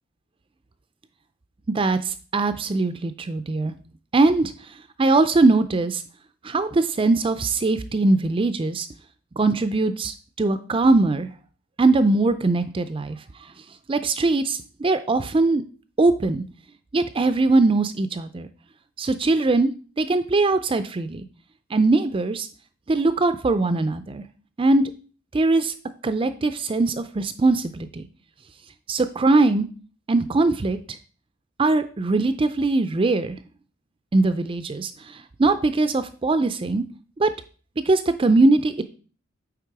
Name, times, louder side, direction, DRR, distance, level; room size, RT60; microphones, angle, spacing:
voice 1, 1.7-3.7 4.1-4.5 5.0-6.0 6.4-8.9 9.4-11.3 11.8-13.2 13.9-15.6 16.0-16.4 16.9-18.5 19.0-19.7 20.0-21.3 21.7-22.5 22.9-24.2 24.6-24.9 25.3-25.7 26.0-28.1 28.9-29.7 30.1-31.0 31.6-33.4 34.1-36.8 37.2-37.3 37.9-38.8, right 3 dB, 25° right, 10 dB, 0.4 m, -21 dB
8.5 x 3.5 x 4.7 m, 0.37 s
head